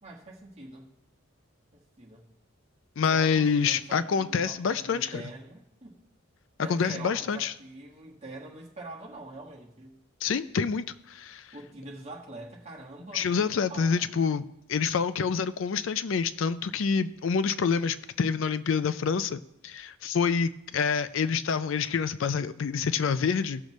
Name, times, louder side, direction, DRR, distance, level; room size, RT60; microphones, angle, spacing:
voice 1, 0.0-0.9 1.7-2.3 3.1-6.0 6.6-10.0 11.5-14.1, right 2 dB, 30° right, -3 dB, 1.5 m, -44 dB
voice 2, 3.0-5.2 6.6-7.5 10.2-11.5 13.1-23.6, left 6 dB, 65° left, 13 dB, 0.4 m, -27 dB
17.5 x 6.5 x 3.1 m, 0.81 s
head